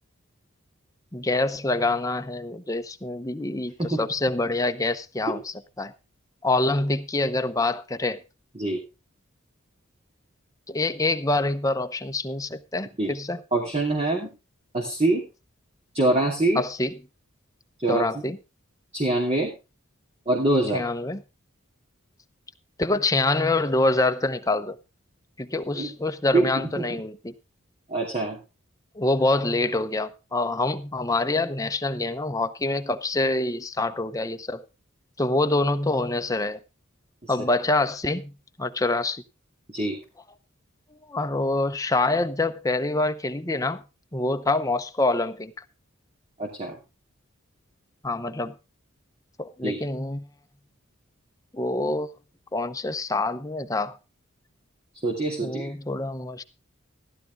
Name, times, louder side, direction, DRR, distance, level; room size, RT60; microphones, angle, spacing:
voice 1, 1.1-5.9 6.4-8.2 10.7-13.4 16.6-16.9 17.9-18.4 20.7-21.2 22.8-24.8 25.4-27.3 29.0-34.6 35.2-36.6 37.3-38.3 38.6-39.2 41.1-43.8 44.1-45.5 48.0-48.5 49.4-50.3 51.5-52.1 52.5-54.0 55.4-56.4, left 2 dB, 15° left, 0.7 m, -26 dB
voice 2, 13.5-14.3 14.7-15.2 15.9-16.6 17.8-18.2 18.9-19.5 20.3-20.8 25.8-25.9 26.3-27.0 27.9-28.4 37.2-37.3 39.7-40.0 46.4-46.8 49.6-49.8 55.0-55.7, right 2 dB, 30° right, 2.7 m, -24 dB
15.0 x 12.0 x 3.6 m
head